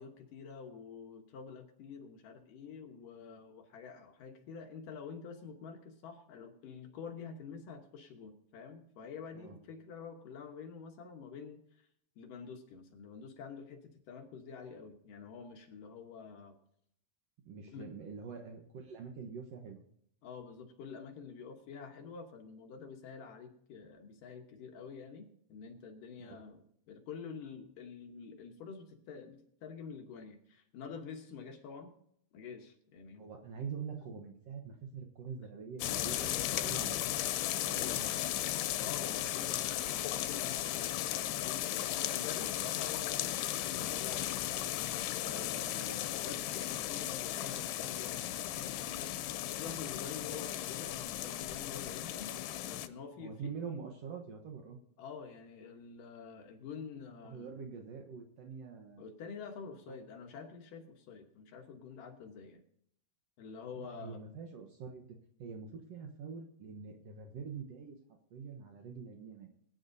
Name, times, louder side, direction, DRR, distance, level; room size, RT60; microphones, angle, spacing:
voice 1, 0.0-11.9 12.2-16.5 17.7-17.9 20.2-26.6 26.9-31.9 32.3-33.3 37.7-38.0 38.8-44.8 45.2-52.3 52.6-53.5 55.0-57.5 59.0-62.6 63.4-64.2, left 5 dB, 65° left, 3 dB, 2.5 m, -48 dB
voice 2, 17.4-19.8 26.2-26.4 33.2-37.0 37.6-38.3 53.2-54.8 57.2-59.1 59.9-60.0 63.8-68.0 68.3-69.5, right 6 dB, 80° right, 3 dB, 1.4 m, -45 dB
sound 1, 35.8-52.9, left 13 dB, 85° left, 2.8 m, -36 dB
21.0 x 10.5 x 2.7 m, 0.69 s
omnidirectional pair, 4.6 m